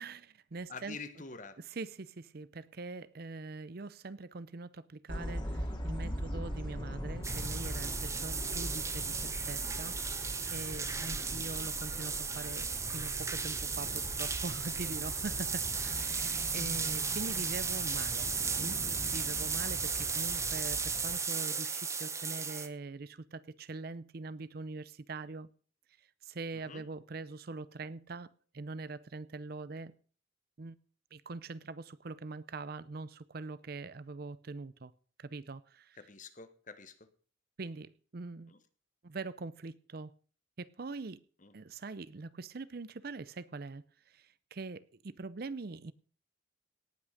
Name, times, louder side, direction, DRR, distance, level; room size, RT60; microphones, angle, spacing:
voice 1, 0.0-1.0 1.6-18.3 18.6-18.8 19.1-25.5 26.2-28.3 28.5-29.9 30.6-30.8 31.1-34.9 35.2-36.0 37.6-38.5 39.0-40.1 40.6-41.2 41.5-45.9, right 3 dB, 50° right, 17 dB, 0.6 m, -43 dB
voice 2, 0.7-1.6 26.5-26.9 36.0-37.1 38.5-38.6 41.4-41.5, left 4 dB, 40° left, 11 dB, 1.2 m, -47 dB
sound 1, 5.1-21.2, equal, 25° left, 2.3 m, -42 dB
sound 2, 7.2-22.7, right 5 dB, 15° right, 0.8 m, -35 dB
18.0 x 6.1 x 6.5 m, 0.42 s
head